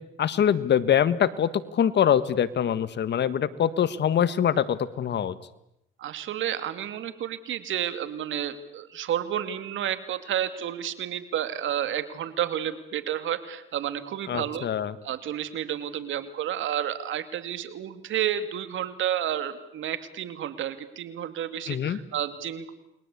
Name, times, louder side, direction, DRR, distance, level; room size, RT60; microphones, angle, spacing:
voice 1, 0.2-5.3 14.3-14.9 21.7-22.0, left 9 dB, 60° left, 15 dB, 1.6 m, -24 dB
voice 2, 6.0-14.7 15.0-22.7, right 10 dB, 75° right, 11 dB, 2.5 m, -31 dB
29.5 x 22.0 x 8.5 m, 0.84 s
cardioid pair, 90°, 20 cm